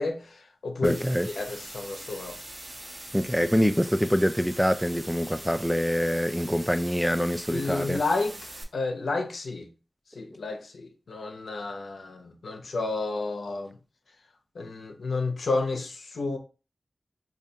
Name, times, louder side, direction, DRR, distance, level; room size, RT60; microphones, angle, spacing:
voice 1, 0.0-2.4 7.5-9.7 10.1-13.8 14.5-16.4, left 3 dB, 85° left, 0.6 m, -31 dB
voice 2, 0.8-1.3 3.1-8.0, equal, ahead, 0.3 m, -25 dB
sound 1, 0.8-8.6, right 1 dB, 50° right, 0.9 m, -42 dB
4.7 x 2.3 x 2.7 m
cardioid pair, 55°, 0 cm